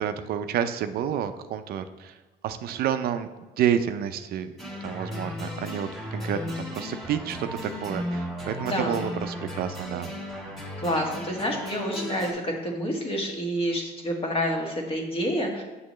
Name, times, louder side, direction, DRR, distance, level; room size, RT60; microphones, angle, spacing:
voice 1, 0.0-2.1 2.4-3.3 3.6-4.5 4.8-10.1, right 9 dB, 65° right, 10 dB, 0.5 m, -29 dB
sound 1, 4.6-12.3, equal, ahead, 1.7 m, -35 dB
voice 2, 8.6-9.0 10.8-15.6, equal, 35° left, 1 dB, 1.5 m, -28 dB
7.0 x 6.5 x 3.1 m, 1.2 s
cardioid pair, 110°, 17 cm